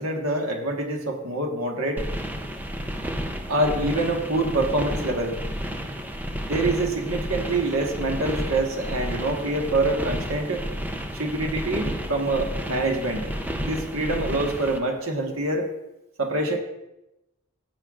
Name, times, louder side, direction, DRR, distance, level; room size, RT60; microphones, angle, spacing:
voice 1, 0.0-2.1 3.5-5.4 6.4-10.6 11.1-15.7 16.2-16.6, right 2 dB, 80° right, 2 dB, 1.5 m, -26 dB
sound 1, 2.0-14.8, equal, 10° right, 0.6 m, -31 dB
15.5 x 7.9 x 2.5 m, 0.92 s
head